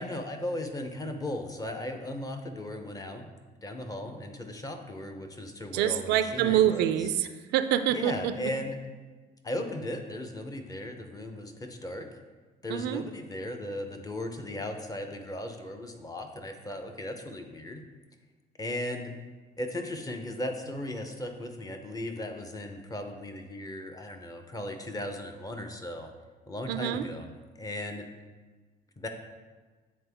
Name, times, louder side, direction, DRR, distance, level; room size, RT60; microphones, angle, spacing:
voice 1, 0.0-3.3 3.6-6.9 7.9-8.8 9.4-12.1 12.6-17.8 18.6-19.1 19.6-26.1 26.5-27.3 27.6-28.1 29.0-29.1, left 1 dB, 20° left, 5 dB, 0.7 m, -37 dB
voice 2, 5.7-8.3 12.7-13.0 26.7-27.1, right 11 dB, 85° right, 10 dB, 0.4 m, -26 dB
8.4 x 3.7 x 3.5 m, 1.4 s
cardioid pair, 110°, 17 cm